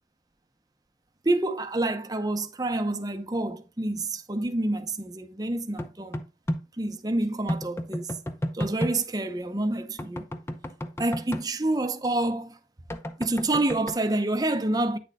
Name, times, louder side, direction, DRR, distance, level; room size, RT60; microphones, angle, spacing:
voice 1, 1.2-6.2 6.8-8.1 8.5-10.3 11.0-12.6 13.2-15.0, right 2 dB, 20° right, 0.7 m, -28 dB
sound 1, 5.8-6.6 7.5-9.0 10.0-11.4 12.9-14.0, equal, 15° left, 0.6 m, -31 dB
9.4 x 6.6 x 2.3 m
head